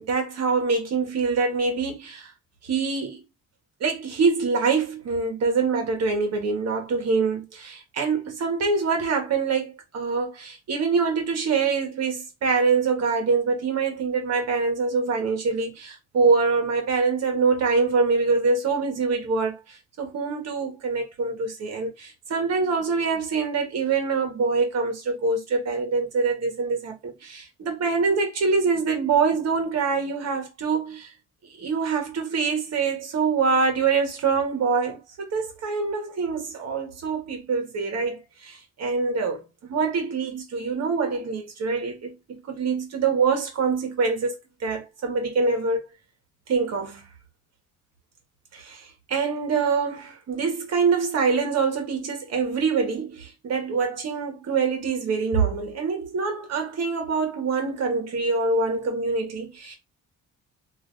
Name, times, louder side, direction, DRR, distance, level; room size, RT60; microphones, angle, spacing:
voice 1, 0.0-2.3 2.6-3.2 3.8-31.1 31.6-44.3 44.6-45.8 46.5-47.0 48.5-59.7, right 4 dB, 60° right, 1.4 m, -25 dB
3.3 x 2.7 x 2.6 m
cardioid pair, 90°, 30 cm